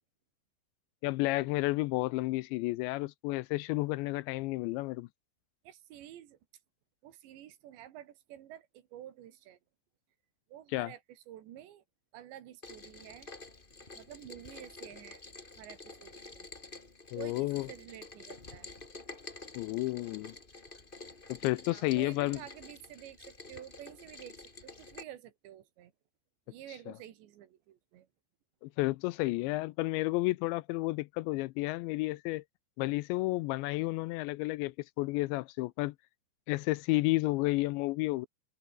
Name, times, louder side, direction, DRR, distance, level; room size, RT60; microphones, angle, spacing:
voice 1, 1.0-5.1 10.7-10.9 17.1-17.7 19.6-20.3 21.3-22.4 28.6-32.4 32.8-35.9 36.5-38.3, left 21 dB, 85° left, 2.8 m, -31 dB
voice 2, 5.6-6.4 7.0-9.6 10.5-11.8 12.1-13.3 14.0-15.2 15.6-16.5 17.2-18.7 21.7-25.9 26.5-28.1, right 12 dB, 75° right, 3.9 m, -50 dB
Rain, 12.6-25.0, left 3 dB, 55° left, 0.5 m, -49 dB
omnidirectional pair, 5.4 m